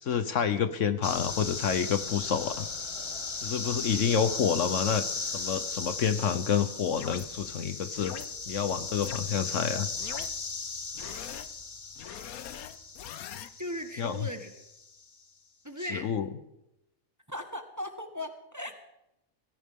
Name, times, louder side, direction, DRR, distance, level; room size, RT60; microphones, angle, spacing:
voice 1, 0.0-2.7 3.4-8.1 8.5-9.9 14.0-14.2 15.9-16.3, left 7 dB, 65° left, 11 dB, 1.1 m, -28 dB
sound 1, 1.0-15.0, left 4 dB, 30° left, 0.5 m, -37 dB
sound 2, 6.9-7.3 7.9-8.3 9.0-9.2 10.0-10.3 10.9-11.5 12.0-13.5, left 11 dB, 85° left, 1.2 m, -41 dB
voice 2, 13.6-14.5 15.6-16.1 17.3-18.7, left 1 dB, 15° right, 5 dB, 1.3 m, -37 dB
17.5 x 17.5 x 3.6 m, 0.87 s
omnidirectional pair, 1.5 m